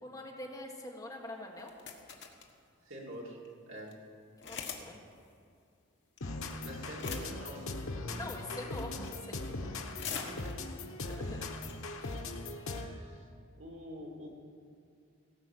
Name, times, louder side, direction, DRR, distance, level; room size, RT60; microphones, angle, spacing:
voice 1, 0.0-1.7 4.4-5.0 8.1-9.4 11.0-11.5, left 1 dB, 15° left, -1 dB, 1.6 m, -44 dB
sound 1, 1.6-2.5 3.1-3.2 3.4-3.5 3.8-3.9 4.4-4.9 5.1-5.2 6.2-6.5 6.8-7.5 8.2-8.4 8.8-9.2 9.6-10.8 11.3-11.4 11.5-11.7 12.1-12.4, left 6 dB, 55° left, 1.3 m, -42 dB
voice 2, 2.8-3.4 3.7-4.0 6.5-7.8 8.1-8.4 9.6-9.7 10.1-10.6 11.1-11.3 12.7-13.3 13.6-14.3, equal, 70° right, -2 dB, 2.6 m, -46 dB
sound 2, 6.2-13.1, left 2 dB, 80° left, 1.1 m, -40 dB
17.5 x 6.2 x 8.0 m, 2.4 s
head